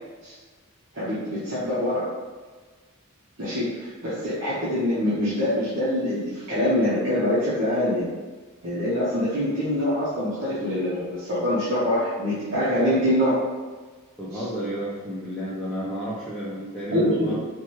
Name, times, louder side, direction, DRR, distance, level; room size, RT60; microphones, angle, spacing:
voice 1, 0.9-2.1 3.4-8.1 8.6-13.4 14.3-14.4 16.9-17.4, left 1 dB, 60° right, -11 dB, 1.0 m, -24 dB
voice 2, 14.2-17.3, right 1 dB, ahead, -10 dB, 0.5 m, -31 dB
4.6 x 2.3 x 3.0 m, 1.4 s
head